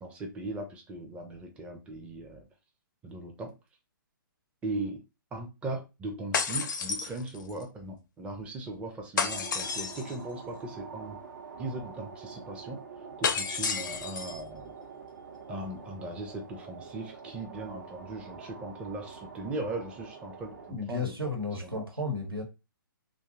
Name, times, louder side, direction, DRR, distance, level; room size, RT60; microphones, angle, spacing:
voice 1, 0.0-2.4 3.0-3.5 4.6-5.0 5.3-11.2 11.6-12.8 13.2-14.7 15.5-21.3 21.6-21.9, right 2 dB, 10° right, 0.5 m, -38 dB
sound 1, 6.3-7.6 9.2-10.2 13.2-14.4, left 5 dB, 60° left, 0.5 m, -31 dB
sound 2, 9.2-20.7, right 5 dB, 60° right, 0.7 m, -46 dB
voice 2, 20.7-22.4, left 2 dB, 85° right, 1.1 m, -33 dB
2.6 x 2.3 x 3.6 m
figure-of-eight pair, 125°, 12 cm